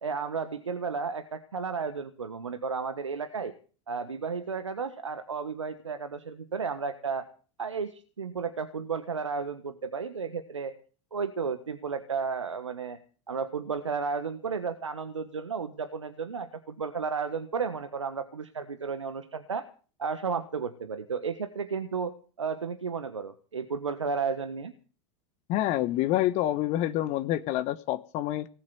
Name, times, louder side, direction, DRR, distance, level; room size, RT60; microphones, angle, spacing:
voice 1, 0.0-3.5 3.9-7.3 7.6-10.7 11.1-13.0 13.3-19.7 20.0-22.1 22.4-24.7, right 5 dB, 90° right, 10 dB, 1.4 m, -33 dB
voice 2, 25.5-28.5, left 14 dB, 50° left, 13 dB, 1.2 m, -27 dB
19.0 x 7.6 x 9.4 m, 0.39 s
hypercardioid pair, 85°, 15 cm